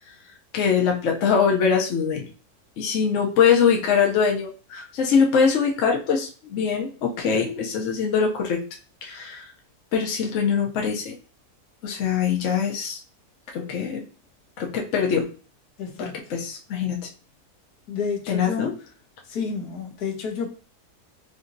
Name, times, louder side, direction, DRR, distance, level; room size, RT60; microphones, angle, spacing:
voice 1, 0.5-2.2 2.8-8.6 9.0-9.5 9.9-11.1 11.8-13.0 13.5-14.0 14.6-15.3 16.0-17.0 18.3-18.7, left 6 dB, 60° left, 1.0 m, -23 dB
voice 2, 15.8-16.3 17.9-18.8 19.3-20.5, left 5 dB, 75° left, 1.4 m, -30 dB
4.9 x 2.7 x 2.6 m
omnidirectional pair, 1.7 m